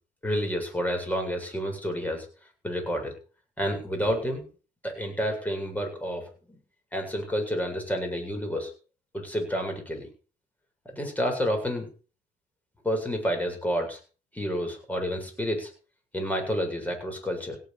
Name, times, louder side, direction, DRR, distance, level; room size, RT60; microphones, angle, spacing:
voice 1, 0.2-2.3 2.6-3.1 3.6-4.4 4.8-6.3 6.9-8.7 9.1-10.1 10.8-11.9 12.8-14.0 14.3-15.7 16.1-17.6, equal, 10° left, 4 dB, 7.8 m, -29 dB
17.0 x 8.8 x 7.4 m, 0.38 s
cardioid pair, 110°, 17 cm